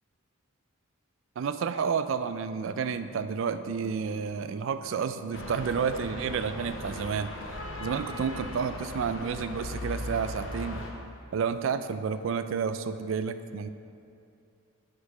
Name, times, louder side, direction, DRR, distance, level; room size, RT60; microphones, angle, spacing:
voice 1, 1.4-7.3 7.8-10.8 11.3-13.7, right 6 dB, 60° right, 11 dB, 0.3 m, -30 dB
sound 1, 2.7-7.8, left 1 dB, 85° left, 1.2 m, -54 dB
sound 2, 5.3-10.9, left 1 dB, 60° left, 0.8 m, -38 dB
6.6 x 4.7 x 5.5 m, 2.6 s
head